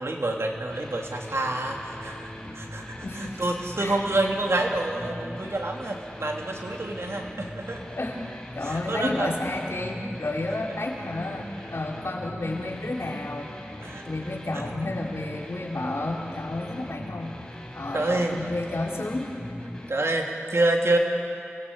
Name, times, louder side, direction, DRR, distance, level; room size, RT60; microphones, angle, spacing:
voice 1, 0.0-7.9 8.6-9.3 10.0-10.2 13.8-14.7 17.9-18.4 19.9-21.0, right 2 dB, 70° right, 1 dB, 3.1 m, -28 dB
sound 1, 0.7-19.9, left 1 dB, 15° left, 5.0 m, -41 dB
voice 2, 3.0-3.4 3.8-4.0 8.0-17.4 17.7-19.3, left 2 dB, 70° left, -2 dB, 4.4 m, -31 dB
29.0 x 20.5 x 8.6 m, 2.7 s
wide cardioid pair, 50°, 5 cm